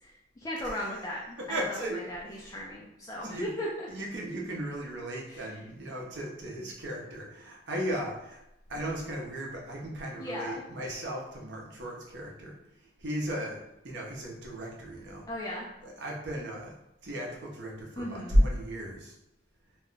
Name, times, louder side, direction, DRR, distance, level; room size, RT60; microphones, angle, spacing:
voice 1, 0.0-3.9 5.3-5.6 10.2-10.6 15.3-15.7 18.0-18.4, equal, 20° left, -5 dB, 0.3 m, -37 dB
voice 2, 0.6-1.0 1.4-2.0 2.3-2.6 3.2-3.5 3.9-8.4 8.7-12.5 12.8-15.3 15.8-16.7 17.0-19.1, equal, 80° right, -2 dB, 0.7 m, -34 dB
2.3 x 2.1 x 3.8 m, 0.87 s
head